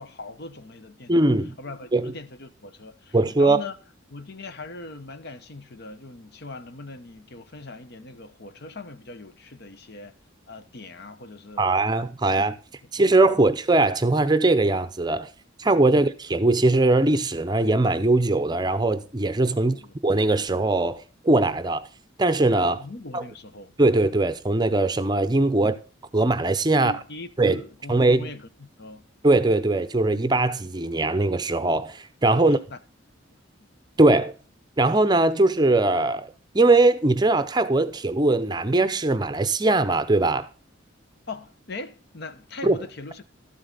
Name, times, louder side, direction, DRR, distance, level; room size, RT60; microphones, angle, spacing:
voice 1, 0.0-1.3 1.6-3.8 4.1-10.1 10.5-11.7 19.6-19.9 22.7-23.7 26.7-29.1 32.4-32.8 41.3-43.3, left 3 dB, 55° left, 0.9 m, -40 dB
voice 2, 1.1-1.5 1.9-2.1 3.1-3.6 11.6-12.6 12.9-15.3 15.6-19.8 20.0-21.9 22.2-22.8 23.1-23.2 23.8-25.8 26.1-26.9 27.4-27.6 27.9-28.3 29.2-32.6 34.0-34.3 34.8-40.5 42.6-42.8, right 2 dB, 20° right, 0.6 m, -21 dB
12.5 x 7.8 x 3.9 m
head